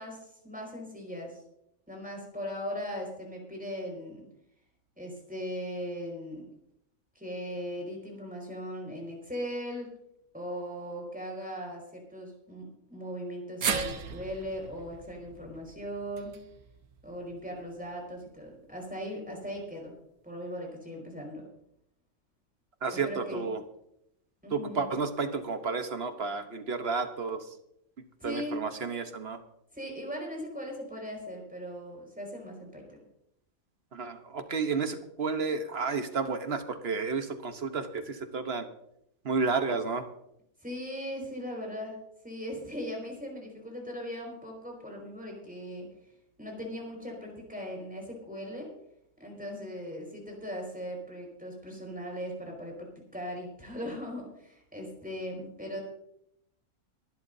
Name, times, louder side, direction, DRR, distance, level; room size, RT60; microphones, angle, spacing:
voice 1, 0.0-1.4 1.9-4.2 5.0-6.5 7.1-9.9 10.3-16.4 17.0-20.0 20.2-21.5 22.9-23.5 24.4-24.9 28.2-28.6 29.7-33.0 40.6-45.9 46.4-48.7 49.2-52.8 53.1-55.8, equal, 5° right, 0 dB, 5.0 m, -39 dB
sound 1, 13.6-17.9 18.2-18.3 19.5-19.6, right 6 dB, 80° right, 1.5 m, -37 dB
voice 2, 22.8-23.6 24.5-27.5 28.2-29.4 33.9-38.7 39.2-40.0, right 4 dB, 50° right, 8 dB, 1.2 m, -31 dB
22.5 x 11.5 x 2.7 m, 0.77 s
omnidirectional pair, 1.5 m